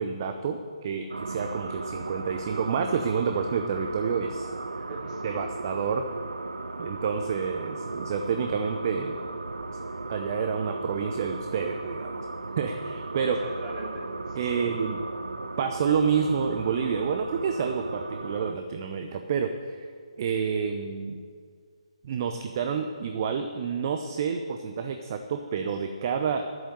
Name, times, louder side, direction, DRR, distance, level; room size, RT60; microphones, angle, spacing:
voice 1, 0.0-4.5 5.2-6.1 6.8-9.2 10.1-12.3 12.6-13.4 14.3-15.0 15.6-19.8 20.2-21.2 22.0-26.5, right 6 dB, 35° right, 6 dB, 0.7 m, -29 dB
sound 1, 1.1-18.5, right 3 dB, 70° right, 0.7 m, -36 dB
voice 2, 4.7-5.5 13.2-14.7, right 2 dB, 20° right, -4 dB, 3.1 m, -42 dB
10.0 x 8.0 x 9.3 m, 2.1 s
figure-of-eight pair, 140°, 4 cm